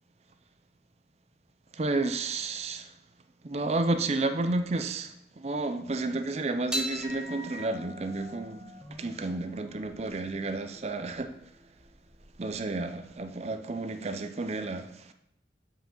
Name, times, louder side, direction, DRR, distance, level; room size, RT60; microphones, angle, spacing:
voice 1, 1.7-2.9 3.4-8.6 9.0-11.3 12.4-15.1, right 2 dB, 35° right, 8 dB, 0.5 m, -31 dB
sound 1, 6.7-13.3, equal, 5° right, 0.9 m, -41 dB
7.9 x 4.9 x 3.8 m, 0.79 s
head